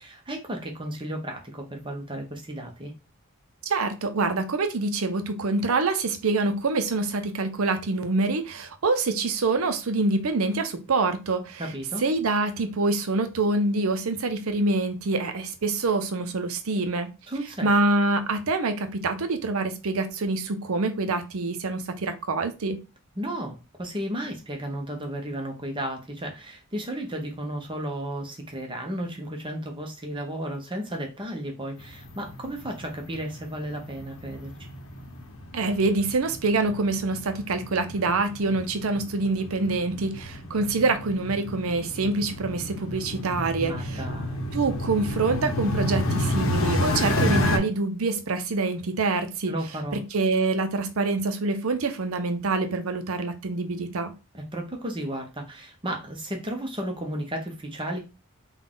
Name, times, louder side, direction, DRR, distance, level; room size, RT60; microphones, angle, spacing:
voice 1, 0.0-2.9 11.6-12.0 17.3-17.7 23.2-34.8 43.6-44.4 49.5-50.0 54.3-58.0, right 1 dB, 25° right, 0.9 m, -34 dB
voice 2, 3.6-11.6 12.0-17.1 17.6-22.8 35.5-44.0 44.5-49.5 49.9-54.1, right 3 dB, 80° right, 0.6 m, -26 dB
sound 1, 31.8-47.6, left 1 dB, 65° left, 0.7 m, -30 dB
3.9 x 2.4 x 3.7 m
head